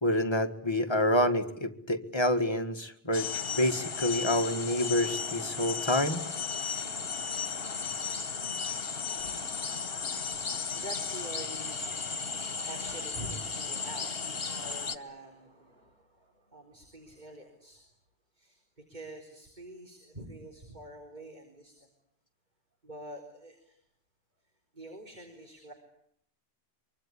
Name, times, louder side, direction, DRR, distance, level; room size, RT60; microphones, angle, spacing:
voice 1, 0.0-6.2, left 1 dB, 25° left, 6 dB, 2.0 m, -28 dB
sound 1, 3.1-15.0, left 5 dB, 65° left, 1.6 m, -35 dB
voice 2, 9.3-17.8 18.4-18.6 18.9-21.8 22.8-23.8 24.7-25.7, right 1 dB, 45° right, 3 dB, 4.2 m, -47 dB
25.0 x 24.0 x 9.8 m, 0.71 s
omnidirectional pair, 1.1 m